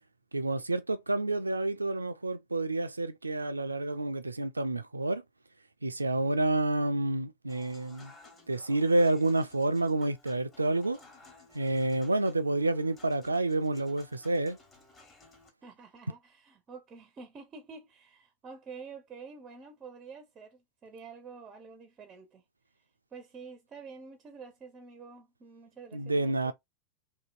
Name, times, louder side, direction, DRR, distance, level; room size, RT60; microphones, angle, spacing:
voice 1, 0.3-5.2 5.8-8.1 8.5-11.0 11.5-14.6 25.9-26.5, right 2 dB, 80° right, 0.3 m, -29 dB
Human voice / Acoustic guitar / Piano, 7.5-15.5, left 3 dB, 25° left, 1.2 m, -57 dB
voice 2, 15.6-22.4 23.1-26.5, right 5 dB, 25° right, 0.5 m, -48 dB
2.7 x 2.7 x 2.4 m
figure-of-eight pair, 90°, 0 cm